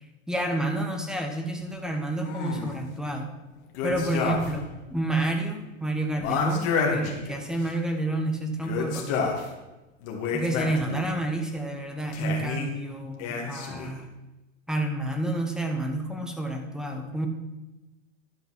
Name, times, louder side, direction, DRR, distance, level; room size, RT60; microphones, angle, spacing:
voice 1, 0.3-3.3 3.8-9.3 10.3-14.1 14.7-17.3, right 2 dB, ahead, 4 dB, 1.0 m, -29 dB
sound 1, 2.2-2.8 3.7-4.7 5.0-5.1 6.2-7.7 8.6-9.5 10.0-11.1 12.1-12.7 13.2-14.0, left 5 dB, 35° left, 1.9 m, -29 dB
11.0 x 5.2 x 6.2 m, 1.1 s
hypercardioid pair, 135°, 40 cm